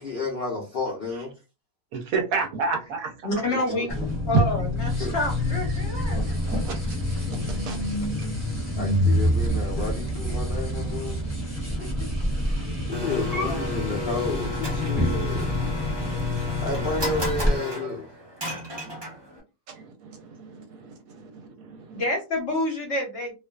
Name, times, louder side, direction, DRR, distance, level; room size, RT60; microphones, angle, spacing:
voice 1, 0.0-1.4 3.5-4.1 5.0-5.2 8.8-11.2 12.9-15.6 16.6-18.1, left 3 dB, 80° left, 0.5 m, -31 dB
voice 2, 1.9-3.1 5.7-6.4 6.6-7.0 7.7-7.8 16.3-16.5 19.7-22.0, right 4 dB, 70° right, 0.9 m, -32 dB
voice 3, 3.2-3.9 4.3-6.2 11.8-12.1 13.4-13.7 21.9-23.3, left 1 dB, 60° left, 0.8 m, -28 dB
sound 1, 3.9-17.5, left 1 dB, 10° right, 0.8 m, -27 dB
Domestic sounds home sounds, 12.9-19.4, left 2 dB, 35° right, 0.4 m, -34 dB
2.4 x 2.3 x 2.2 m
omnidirectional pair, 1.7 m